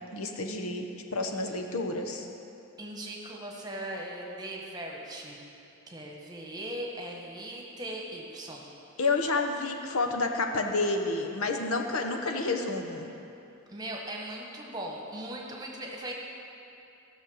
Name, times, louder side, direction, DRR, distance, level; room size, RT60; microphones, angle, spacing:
voice 1, 0.1-2.3 9.0-13.1, left 3 dB, 80° left, 4 dB, 1.0 m, -30 dB
voice 2, 2.8-5.4 5.9-8.7 13.7-16.1, right 1 dB, 20° right, -1 dB, 1.4 m, -39 dB
15.0 x 6.5 x 6.4 m, 2.7 s
head